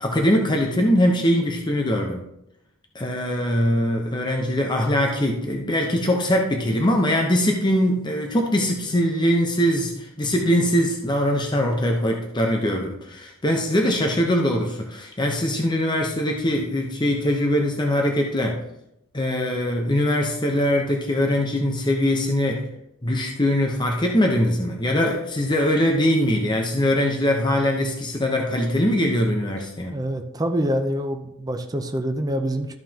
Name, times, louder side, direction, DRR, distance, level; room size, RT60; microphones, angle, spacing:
voice 1, 0.0-2.2 2.9-18.6 19.1-22.7 23.0-30.0, equal, 20° left, 1 dB, 0.9 m, -22 dB
voice 2, 29.9-32.7, equal, 20° right, 4 dB, 0.6 m, -26 dB
13.5 x 5.6 x 2.9 m, 0.81 s
head